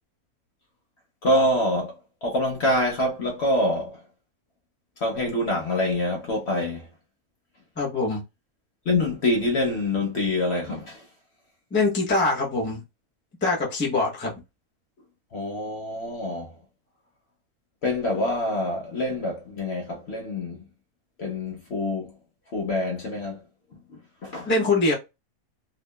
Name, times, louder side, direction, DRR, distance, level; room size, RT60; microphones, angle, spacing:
voice 1, 1.2-4.0 5.0-6.9 8.9-11.0 15.3-16.5 17.8-20.6 21.2-22.1 22.5-23.4 23.9-24.5, left 1 dB, 55° left, 0.8 m, -26 dB
voice 2, 7.8-8.2 11.7-12.8 13.4-14.3 24.5-24.9, left 3 dB, 10° left, 0.5 m, -23 dB
2.9 x 2.3 x 2.2 m
omnidirectional pair, 1.6 m